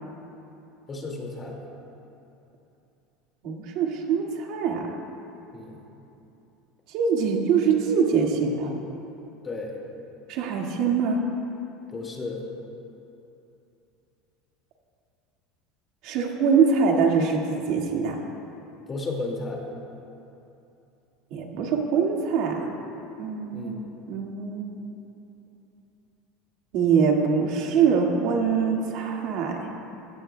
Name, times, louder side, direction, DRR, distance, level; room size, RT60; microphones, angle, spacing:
voice 1, 0.9-1.6 5.5-5.8 9.4-9.8 11.9-12.4 18.9-19.6 23.5-23.9, left 3 dB, 20° left, -1 dB, 2.1 m, -33 dB
voice 2, 3.4-4.9 6.9-8.7 10.3-11.3 16.0-18.2 21.3-22.7 23.2-23.7 24.1-24.8 26.7-29.7, right 6 dB, 60° right, 0 dB, 1.9 m, -23 dB
20.5 x 16.5 x 2.2 m, 2.9 s
supercardioid pair, 145°, 0 cm